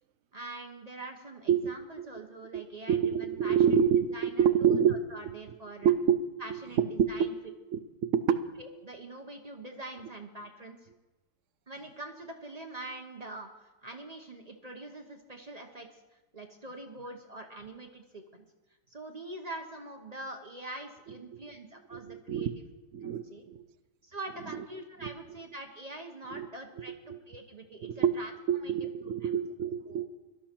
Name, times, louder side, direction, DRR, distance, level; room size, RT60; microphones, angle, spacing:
voice 1, 0.3-5.9 6.4-7.3 8.6-10.8 11.7-13.5 13.8-15.9 16.3-18.4 18.9-22.5 23.0-23.4 24.0-28.3 28.6-28.7 29.2-29.3 29.9-30.0, right 2 dB, 35° right, 3 dB, 0.6 m, -44 dB
voice 2, 1.5-2.1 2.5-2.6 2.9-5.0 5.3-5.4 5.8-6.2 6.8-7.3 7.7-8.4 21.9-22.6 22.9-23.6 24.5-24.6 25.0-25.1 26.3-26.5 26.8-26.9 27.1-27.2 27.8-28.2 28.5-30.0, right 8 dB, 75° right, 10 dB, 0.7 m, -27 dB
17.5 x 12.0 x 4.5 m, 1.1 s
omnidirectional pair, 2.1 m